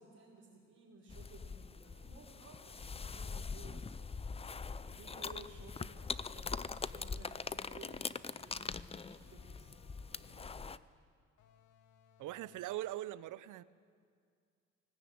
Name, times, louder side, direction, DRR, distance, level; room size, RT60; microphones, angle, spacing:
voice 1, 0.0-4.2 4.5-10.5, right 3 dB, 50° right, 5.0 m, -57 dB
sound 1, 1.1-10.8, left 5 dB, 20° left, 0.5 m, -43 dB
sound 2, 1.7-11.0, right 1 dB, 25° right, 5.7 m, -75 dB
sound 3, 2.3-3.8 4.5-6.1 7.0-8.4 9.3-10.7 11.4-12.8, left 9 dB, 85° left, 1.2 m, -67 dB
voice 2, 12.2-13.6, right 14 dB, 80° right, 0.7 m, -41 dB
18.5 x 18.0 x 9.4 m
cardioid pair, 90°, 30 cm